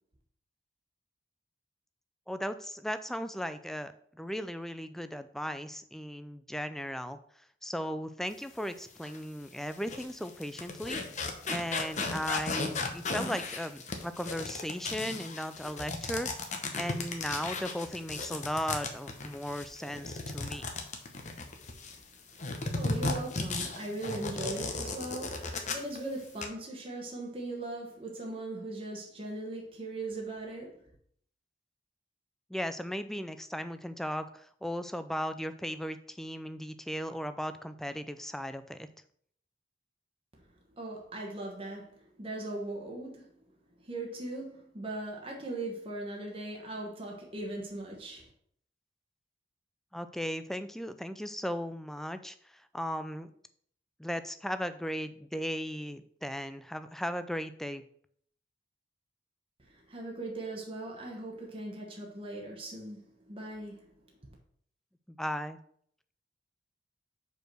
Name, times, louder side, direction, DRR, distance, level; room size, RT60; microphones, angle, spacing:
voice 1, 2.3-7.2 7.6-20.6 32.5-38.9 49.9-53.3 54.0-57.8 65.2-65.6, equal, ahead, 0.3 m, -37 dB
sound 1, 9.0-9.2 9.7-22.0 22.4-26.0 26.2-26.5, left 3 dB, 40° left, 0.9 m, -35 dB
voice 2, 22.4-30.9 40.4-43.4 43.8-48.3 59.6-63.9 64.2-64.3, right 2 dB, 30° right, 1.2 m, -39 dB
5.2 x 4.7 x 6.2 m
head